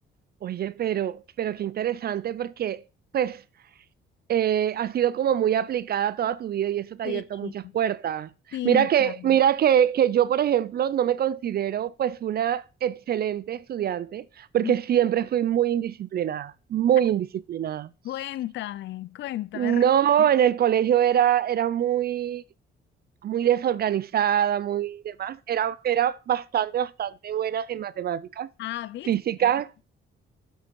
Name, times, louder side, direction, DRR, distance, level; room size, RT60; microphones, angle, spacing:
voice 1, 0.4-2.8 3.1-3.4 4.3-8.3 8.6-17.9 19.6-22.4 23.2-28.5 29.1-29.8, right 10 dB, 50° right, 0.4 m, -24 dB
voice 2, 7.0-7.8 8.5-9.4 14.6-14.8 18.0-19.8 20.2-20.3 28.6-29.5, left 14 dB, 65° left, 0.5 m, -34 dB
8.0 x 7.6 x 4.6 m
cardioid pair, 90°, 20 cm